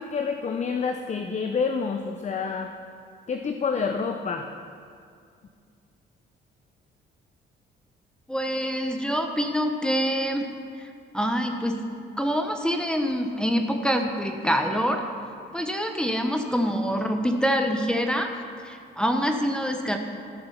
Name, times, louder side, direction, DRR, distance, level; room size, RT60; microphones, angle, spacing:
voice 1, 0.0-2.7 3.3-4.5, left 5 dB, 35° left, 6 dB, 0.6 m, -28 dB
voice 2, 8.3-10.5 10.8-10.9 11.1-11.8 12.2-15.0 15.5-18.3 18.6-20.0, equal, 5° left, 3 dB, 1.0 m, -25 dB
14.0 x 6.7 x 5.7 m, 2.3 s
cardioid pair, 90°, 20 cm